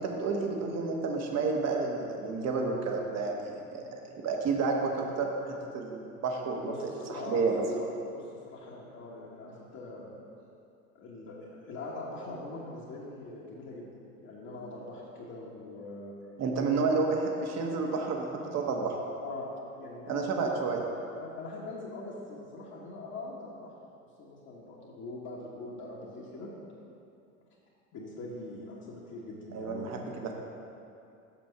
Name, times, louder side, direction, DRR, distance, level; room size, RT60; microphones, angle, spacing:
voice 1, 0.0-3.8 4.2-7.6 16.4-19.0 20.1-20.8 29.5-30.3, right 4 dB, 35° right, 1 dB, 1.3 m, -30 dB
voice 2, 6.6-7.5 7.8-10.1 10.9-13.9 14.2-16.1 19.2-20.5 21.2-23.7 24.2-26.5 27.9-29.9, left 2 dB, 40° left, -6 dB, 1.4 m, -42 dB
6.8 x 6.2 x 5.8 m, 2.6 s
figure-of-eight pair, 75°, 43 cm